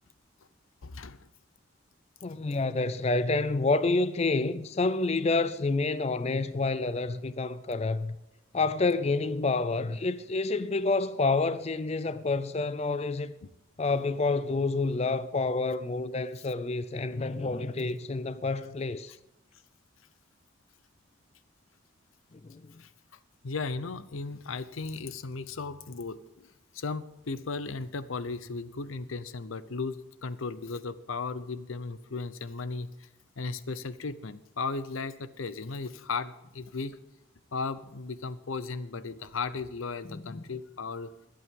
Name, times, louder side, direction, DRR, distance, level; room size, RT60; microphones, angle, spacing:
voice 1, 0.8-1.3 13.4-13.5 22.8-22.9 23.4-26.5 26.7-33.1 33.4-37.0 37.5-41.1, left 4 dB, 85° left, 0.7 m, -36 dB
voice 2, 2.2-8.2 8.5-13.3 13.8-19.1 22.4-22.8 40.1-40.4, left 3 dB, 30° left, 0.4 m, -28 dB
21.5 x 8.5 x 3.7 m
head